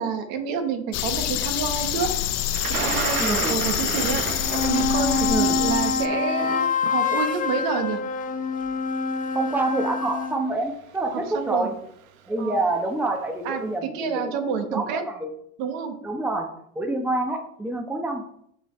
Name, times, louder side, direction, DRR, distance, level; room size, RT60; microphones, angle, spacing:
voice 1, 0.0-2.1 2.8-8.0 11.1-11.7 12.4-12.6 13.4-15.0 15.6-16.0, right 6 dB, 55° right, 5 dB, 1.7 m, -29 dB
sound 1, 0.9-6.1, left 13 dB, 40° left, 0.6 m, -26 dB
Thunder, 2.5-8.5 9.5-9.6 10.7-11.0 11.3-11.7, right 8 dB, 75° right, 1.3 m, -32 dB
voice 2, 3.2-3.6 3.8-4.1 5.3-5.6 9.3-11.7 12.3-14.4 14.7-15.3 16.0-16.5 16.7-18.2, right 2 dB, 5° right, 3 dB, 1.2 m, -27 dB
sound 2, 4.2-10.4, left 4 dB, 20° left, 1.0 m, -26 dB
8.2 x 6.8 x 3.4 m, 0.69 s
hypercardioid pair, 100°, 41 cm